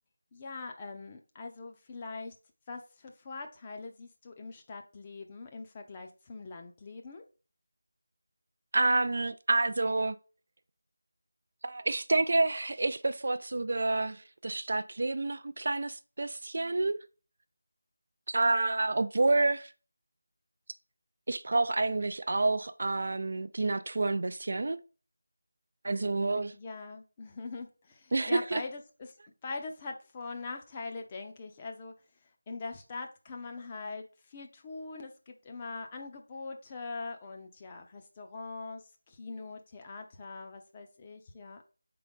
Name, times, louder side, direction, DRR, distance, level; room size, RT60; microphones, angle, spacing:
voice 1, 0.3-2.3 2.7-7.2 26.5-29.1 29.4-31.9 32.5-41.6, left 3 dB, 20° left, 0.7 m, -42 dB
voice 2, 8.7-10.2 11.6-17.0 18.3-19.7 21.3-24.8 25.8-26.5 28.1-28.6, right 2 dB, 55° right, 0.3 m, -29 dB
4.9 x 3.8 x 5.3 m
figure-of-eight pair, 170°, 0 cm